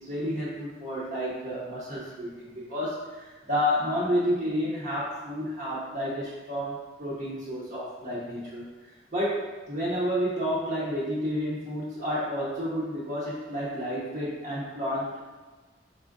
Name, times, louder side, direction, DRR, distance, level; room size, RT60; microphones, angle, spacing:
voice 1, 0.0-8.6 9.1-15.2, equal, 40° right, -9 dB, 0.7 m, -30 dB
4.2 x 3.5 x 2.5 m, 1.3 s
head